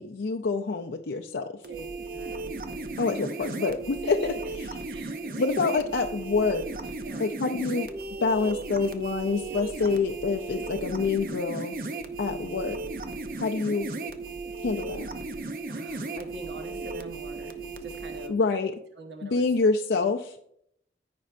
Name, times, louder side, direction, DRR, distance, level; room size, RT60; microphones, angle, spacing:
voice 1, 0.0-1.4 3.0-4.3 5.4-6.6 7.2-7.9 8.2-11.7 12.2-12.8 13.4-13.9 14.6-15.1 18.3-18.7 19.2-20.5, left 4 dB, 80° left, 3 dB, 0.5 m, -26 dB
sound 1, 1.6-18.3, right 3 dB, 50° right, 0.6 m, -36 dB
voice 2, 1.7-3.1 4.0-4.5 4.9-5.9 7.0-7.5 12.3-12.6 15.7-18.4 19.0-19.4, right 2 dB, 80° right, 4 dB, 1.3 m, -44 dB
14.0 x 5.2 x 2.5 m, 0.71 s
head